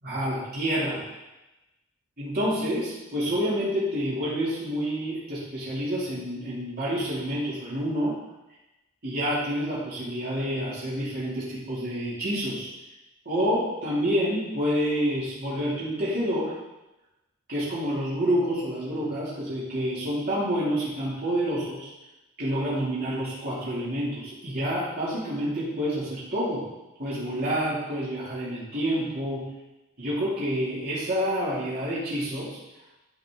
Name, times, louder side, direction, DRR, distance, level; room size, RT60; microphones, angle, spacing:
voice 1, 0.0-1.0 2.2-8.2 9.0-12.7 13.2-16.5 17.5-21.9 22.4-26.6 27.0-29.5 30.0-32.6, equal, 50° right, -9 dB, 2.8 m, -28 dB
10.5 x 4.9 x 3.8 m, 1.0 s
head